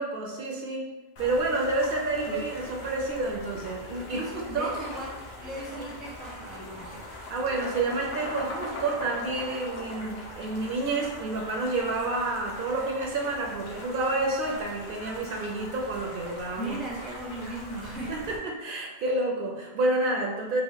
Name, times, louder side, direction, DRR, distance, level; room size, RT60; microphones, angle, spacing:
voice 1, 0.0-4.8 5.7-5.9 7.3-16.8 18.1-20.6, right 2 dB, 65° right, 0 dB, 0.7 m, -29 dB
sound 1, 1.2-18.4, left 1 dB, 75° left, 1.0 m, -43 dB
voice 2, 4.1-5.1 5.4-7.1 16.6-18.2, right 1 dB, ahead, -4 dB, 0.6 m, -37 dB
sound 2, 5.9-6.0 6.3-11.3, left 1 dB, 50° left, 1.0 m, -39 dB
3.4 x 2.5 x 3.5 m, 1.1 s
omnidirectional pair, 1.0 m